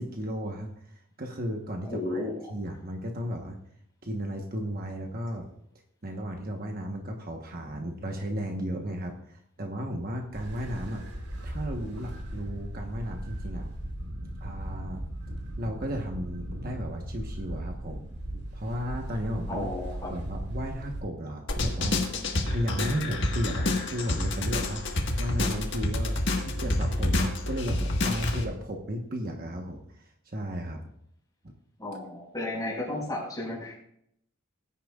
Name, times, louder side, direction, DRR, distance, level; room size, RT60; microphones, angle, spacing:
voice 1, 0.0-2.2 2.5-3.6 4.0-5.5 6.0-11.0 11.4-13.7 14.4-15.0 15.6-18.1 18.5-19.7 20.1-22.1 22.5-30.8, equal, 40° right, 2 dB, 1.2 m, -34 dB
voice 2, 1.8-2.3 19.5-20.1 31.8-33.8, left 1 dB, 15° left, -3 dB, 5.1 m, -33 dB
sound 1, 10.3-21.0, right 1 dB, 90° right, 3.7 m, -38 dB
sound 2, 21.5-28.4, left 2 dB, 55° left, 1.6 m, -28 dB
19.0 x 10.0 x 2.4 m, 0.72 s
head